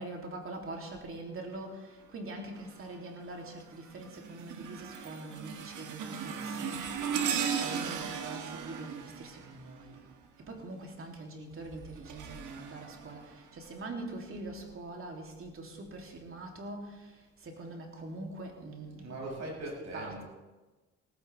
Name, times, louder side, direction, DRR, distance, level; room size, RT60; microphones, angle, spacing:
voice 1, 0.0-6.8 7.3-10.0 10.5-17.0 17.4-19.2 19.9-20.2, right 2 dB, 45° right, 1 dB, 3.2 m, -43 dB
sound 1, 2.6-3.0 3.4-10.3 11.5-13.7 14.3-14.5 15.4-15.5, right 7 dB, 80° right, 1.6 m, -37 dB
voice 2, 19.0-20.2, right 1 dB, 60° right, -3 dB, 6.4 m, -40 dB
17.5 x 15.5 x 3.6 m, 1.2 s
cardioid pair, 90°, 30 cm